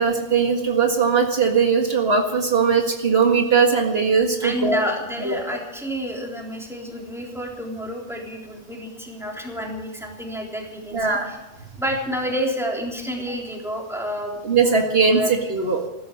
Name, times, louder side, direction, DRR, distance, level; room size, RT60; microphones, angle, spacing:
voice 1, 0.0-4.8 5.2-5.4 10.9-11.3 14.4-15.8, right 5 dB, 65° right, 3 dB, 2.0 m, -20 dB
voice 2, 4.4-11.4 11.8-14.4 14.9-15.3, equal, ahead, -1 dB, 3.6 m, -29 dB
16.0 x 13.0 x 6.4 m, 1.0 s
omnidirectional pair, 1.1 m